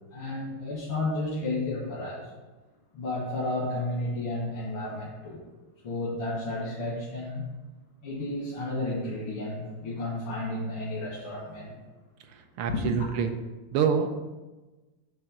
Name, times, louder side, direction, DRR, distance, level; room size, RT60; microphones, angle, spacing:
voice 1, 0.1-2.3 2.9-5.4 5.8-7.5 8.0-11.8 12.7-13.0, left 2 dB, 90° left, -6 dB, 2.6 m, -32 dB
voice 2, 12.3-13.3 13.7-14.1, right 7 dB, 90° right, 7 dB, 1.7 m, -26 dB
9.0 x 3.5 x 6.5 m, 1.2 s
omnidirectional pair, 2.3 m